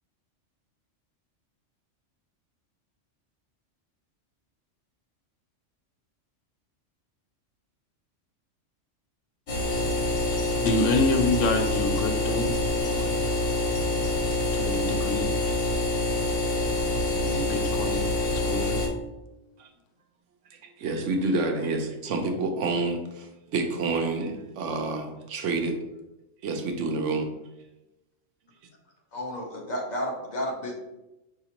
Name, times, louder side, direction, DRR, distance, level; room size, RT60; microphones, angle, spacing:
sound 1, 9.5-18.9, left 1 dB, 60° left, 1.2 m, -26 dB
voice 1, 10.3-13.1 14.5-15.3 17.1-18.9, left 2 dB, 80° left, 5 dB, 0.9 m, -28 dB
voice 2, 20.8-25.8 26.4-27.3, right 3 dB, 75° right, 4 dB, 1.0 m, -28 dB
voice 3, 29.1-30.8, equal, 45° left, 0 dB, 0.7 m, -32 dB
4.9 x 2.8 x 2.8 m, 0.97 s
omnidirectional pair, 1.3 m